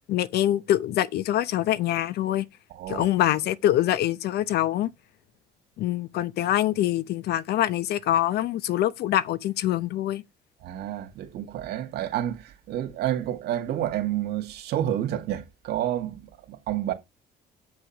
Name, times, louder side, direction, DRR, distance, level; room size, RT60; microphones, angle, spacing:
voice 1, 0.1-2.5 2.9-4.9 5.8-10.2, left 13 dB, 70° left, 0.8 m, -24 dB
voice 2, 2.7-3.1 10.6-16.9, right 12 dB, 75° right, 2.0 m, -29 dB
8.3 x 6.4 x 6.0 m
cardioid pair, 110°, 17 cm